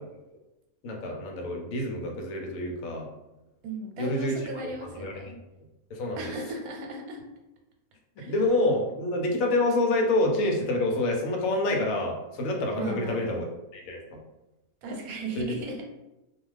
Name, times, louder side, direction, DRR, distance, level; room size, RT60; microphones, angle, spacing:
voice 1, 0.8-3.1 4.0-4.4 5.0-5.1 5.9-6.3 8.2-13.5 13.7-14.0 15.4-15.6, left 2 dB, 75° left, 1 dB, 1.0 m, -27 dB
voice 2, 3.6-5.4 6.2-7.2 8.2-8.3 12.8-13.4 14.8-15.8, right 2 dB, 85° right, 2 dB, 1.1 m, -36 dB
2.4 x 2.4 x 3.2 m, 0.98 s
omnidirectional pair, 1.5 m